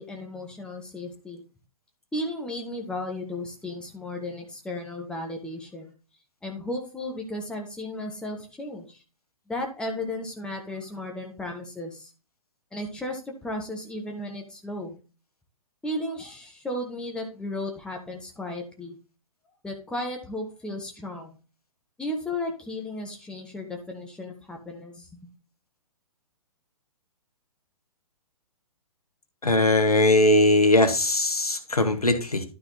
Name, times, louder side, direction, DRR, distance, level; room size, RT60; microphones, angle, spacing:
voice 1, 0.0-1.4 2.1-5.9 6.4-9.0 9.5-12.1 12.7-15.0 15.8-19.0 19.6-21.4 22.0-25.1, left 1 dB, 5° left, 1 dB, 1.4 m, -34 dB
voice 2, 29.4-32.4, left 1 dB, 80° left, 8 dB, 1.6 m, -20 dB
12.0 x 4.2 x 4.1 m, 0.34 s
figure-of-eight pair, 125°, 19 cm